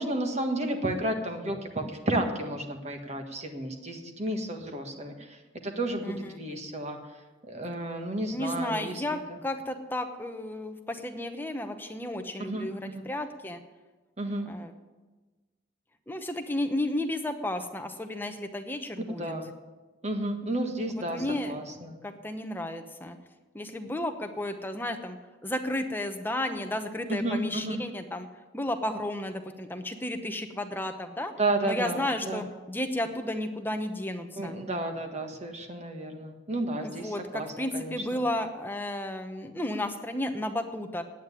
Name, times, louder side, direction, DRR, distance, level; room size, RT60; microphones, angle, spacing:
voice 1, 0.0-5.4 5.6-7.0 7.4-9.2 12.5-13.0 14.2-14.5 19.2-19.5 20.0-22.0 27.1-27.8 31.4-32.4 34.4-38.2, right 1 dB, 35° right, 4 dB, 1.5 m, -32 dB
voice 2, 6.0-6.4 8.3-13.6 14.5-14.7 16.1-19.3 21.1-21.5 22.0-23.2 23.5-25.2 25.4-28.3 28.5-31.3 31.6-34.6 36.8-41.0, left 1 dB, 10° left, 6 dB, 0.8 m, -33 dB
9.4 x 9.1 x 9.8 m, 1.2 s
head